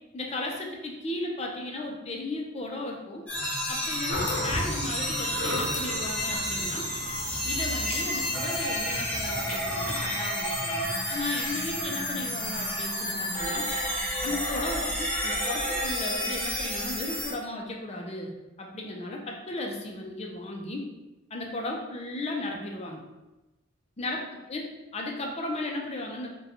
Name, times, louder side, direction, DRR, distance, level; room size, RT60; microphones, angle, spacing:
voice 1, 0.1-3.2 3.7-6.9 7.4-13.6 14.2-18.3 18.6-20.9 21.3-23.0 24.0-24.2 24.5-26.3, left 2 dB, 30° left, 0 dB, 0.5 m, -35 dB
sound 1, 3.3-17.3, equal, 5° left, 0.8 m, -30 dB
sound 2, 4.1-10.2, left 1 dB, 60° left, 0.8 m, -36 dB
3.8 x 2.2 x 4.2 m, 1.1 s
head